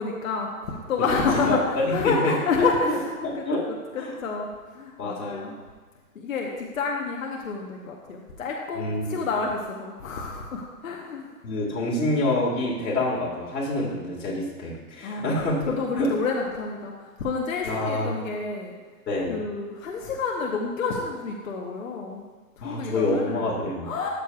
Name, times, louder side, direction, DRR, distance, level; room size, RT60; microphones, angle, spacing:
voice 1, 0.0-3.0 3.3-5.6 6.1-11.3 15.0-15.4 15.7-18.7 19.3-22.2 22.6-23.5 23.8-24.1, left 4 dB, 55° left, 0 dB, 1.0 m, -29 dB
voice 2, 1.4-3.6 4.0-4.2 5.0-5.5 8.8-9.2 11.4-16.1 17.6-18.1 19.1-19.4 22.6-23.9, left 1 dB, 85° left, -5 dB, 1.9 m, -27 dB
13.0 x 6.5 x 2.3 m, 1.4 s
hypercardioid pair, 175°, 48 cm